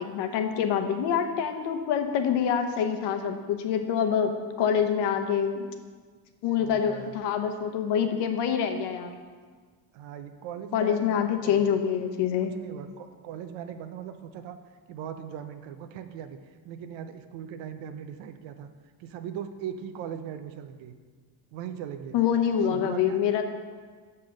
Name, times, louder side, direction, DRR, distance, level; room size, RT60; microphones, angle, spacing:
voice 1, 0.0-4.3 4.6-5.7 6.4-9.1 10.7-12.5 22.1-23.4, left 8 dB, 65° left, 6 dB, 0.9 m, -26 dB
voice 2, 6.6-7.2 9.9-11.7 12.5-14.6 14.9-18.7 19.0-20.9 21.5-22.2 22.6-23.4, right 8 dB, 75° right, 8 dB, 0.8 m, -39 dB
6.6 x 5.6 x 6.5 m, 1.5 s
cardioid pair, 125°, 45 cm